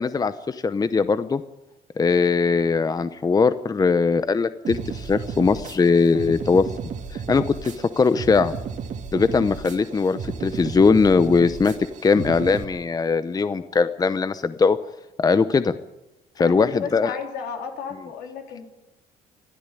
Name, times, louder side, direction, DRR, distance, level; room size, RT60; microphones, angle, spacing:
voice 1, 0.0-1.4 2.0-6.7 7.1-8.6 9.1-11.7 12.0-14.8 15.2-15.7 16.4-17.2, left 4 dB, 20° left, 13 dB, 0.8 m, -20 dB
sound 1, 4.6-12.6, right 6 dB, 45° right, 2.3 m, -33 dB
voice 2, 16.4-18.7, left 7 dB, 80° left, 3 dB, 3.9 m, -33 dB
21.0 x 13.5 x 9.9 m, 0.97 s
cardioid pair, 110°, 17 cm